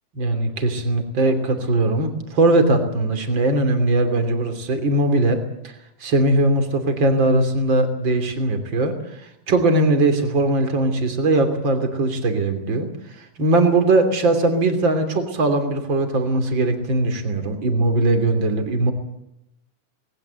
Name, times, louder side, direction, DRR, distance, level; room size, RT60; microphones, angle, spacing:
voice 1, 0.1-5.7 6.0-12.9 13.2-18.9, right 2 dB, 35° right, 7 dB, 3.4 m, -20 dB
20.0 x 19.0 x 8.1 m, 0.84 s
omnidirectional pair, 3.7 m